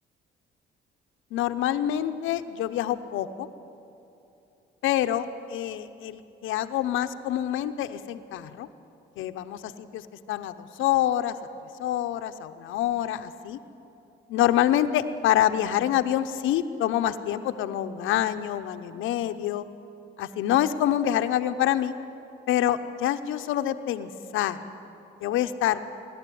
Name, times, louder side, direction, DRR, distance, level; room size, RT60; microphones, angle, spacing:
voice 1, 1.3-3.5 4.8-8.7 9.2-11.4 11.8-13.6 14.3-19.7 20.2-21.9 22.5-24.6 25.2-25.8, left 12 dB, 90° left, 10 dB, 0.8 m, -26 dB
23.5 x 12.0 x 9.3 m, 2.8 s
cardioid pair, 90°, 20 cm